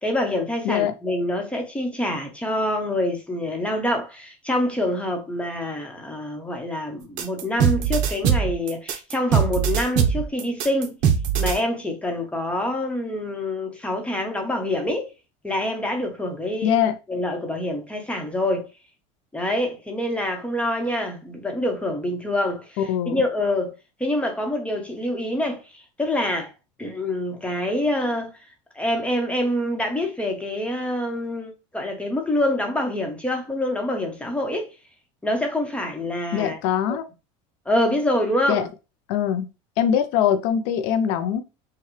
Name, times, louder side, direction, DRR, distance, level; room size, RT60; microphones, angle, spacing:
voice 1, 0.0-11.0 11.4-15.1 15.4-16.8 17.1-18.7 19.3-23.7 24.0-26.5 26.8-28.3 28.7-34.7 35.2-36.6 36.9-37.0 37.6-38.7, left 1 dB, 10° left, 1.1 m, -26 dB
sound 1, 7.2-11.6, right 8 dB, 60° right, 0.8 m, -21 dB
voice 2, 16.6-17.0 22.8-23.2 36.3-37.0 38.5-38.7 39.1-39.5 39.8-41.4, left 9 dB, 75° left, 0.6 m, -22 dB
5.7 x 2.3 x 3.2 m
supercardioid pair, 120°, 15 cm